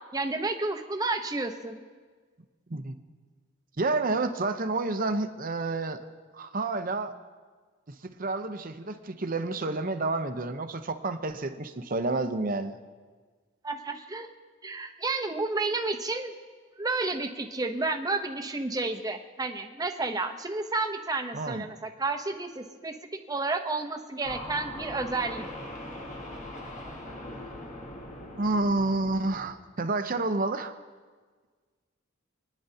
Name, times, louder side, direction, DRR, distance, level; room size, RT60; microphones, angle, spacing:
voice 1, 0.1-1.9 13.6-14.3 14.6-16.3 16.8-22.9 23.3-25.4, right 3 dB, 20° right, 5 dB, 0.8 m, -31 dB
voice 2, 3.8-6.0 6.3-7.1 8.0-12.7 21.3-21.7 28.4-30.7, right 3 dB, 45° right, 8 dB, 0.8 m, -29 dB
sound 1, 24.2-29.5, left 1 dB, 40° left, 1.6 m, -41 dB
29.0 x 10.0 x 2.8 m, 1.5 s
head